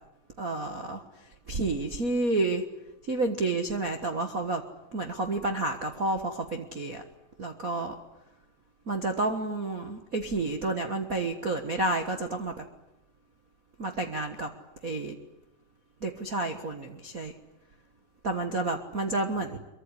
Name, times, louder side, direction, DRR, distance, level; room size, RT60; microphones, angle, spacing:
voice 1, 0.4-1.0 1.5-2.6 3.1-4.6 4.9-7.0 7.4-7.9 8.9-12.5 13.8-14.5 14.8-15.1 16.0-17.3 18.2-19.6, right 2 dB, 60° right, 3 dB, 0.9 m, -30 dB
24.0 x 23.5 x 9.9 m, 0.94 s
omnidirectional pair, 4.0 m